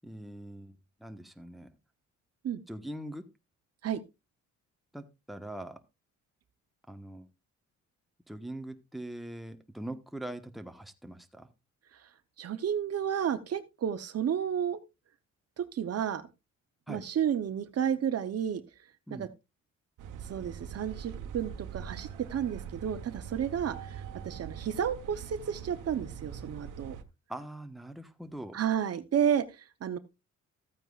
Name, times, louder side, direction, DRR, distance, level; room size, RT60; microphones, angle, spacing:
voice 1, 0.0-1.7 2.7-3.2 4.9-5.8 6.9-7.3 8.3-11.5 16.9-17.0 19.1-19.3 27.3-28.6, right 1 dB, ahead, 6 dB, 1.3 m, -42 dB
voice 2, 12.4-14.8 15.6-16.3 16.9-18.6 19.1-19.3 20.3-27.0 28.5-30.0, right 9 dB, 55° right, 11 dB, 1.0 m, -31 dB
sound 1, 20.0-27.0, right 7 dB, 85° right, 1.3 m, -43 dB
14.5 x 9.0 x 2.5 m, 0.24 s
cardioid pair, 90°, 30 cm